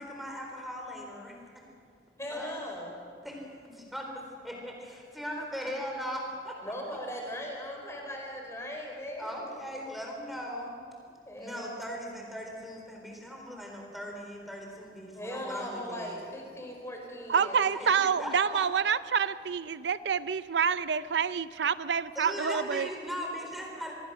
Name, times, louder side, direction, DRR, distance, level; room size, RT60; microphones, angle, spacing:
voice 1, 0.0-1.4 2.3-2.6 3.2-6.6 9.2-10.7 11.4-16.2 17.7-18.6 22.2-23.9, equal, ahead, 4.2 m, -39 dB
voice 2, 2.2-3.0 6.6-9.5 11.2-12.0 15.1-18.1, equal, 15° left, 4.5 m, -39 dB
voice 3, 17.3-22.9, right 6 dB, 85° right, 0.5 m, -27 dB
26.0 x 21.0 x 6.3 m
head